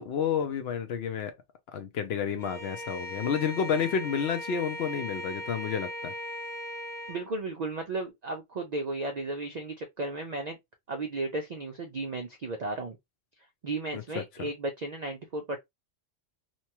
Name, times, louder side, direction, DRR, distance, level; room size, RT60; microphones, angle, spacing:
voice 1, 0.0-1.3 1.7-6.1 13.9-14.5, left 7 dB, 65° left, 0.7 m, -30 dB
Bowed string instrument, 2.4-7.3, left 1 dB, 45° right, 0.7 m, -38 dB
voice 2, 7.1-10.6 10.9-13.0 13.6-15.6, right 2 dB, 65° right, 0.4 m, -34 dB
2.9 x 2.2 x 2.8 m
omnidirectional pair, 1.3 m